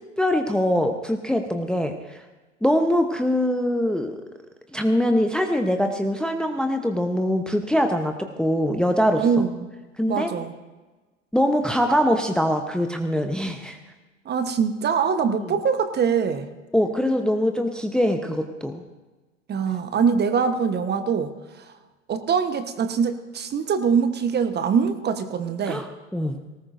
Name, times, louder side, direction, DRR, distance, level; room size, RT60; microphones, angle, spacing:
voice 1, 0.2-2.2 2.6-4.2 4.7-9.2 10.0-10.3 11.3-13.8 15.3-15.5 16.7-18.8 25.7-25.9 26.1-26.4, equal, ahead, 5 dB, 0.9 m, -23 dB
voice 2, 9.2-9.7 10.1-10.5 14.2-16.5 19.5-21.7 22.1-25.8, right 6 dB, 25° right, 10 dB, 1.1 m, -23 dB
19.0 x 18.5 x 2.6 m, 1.2 s
figure-of-eight pair, 85°, 37 cm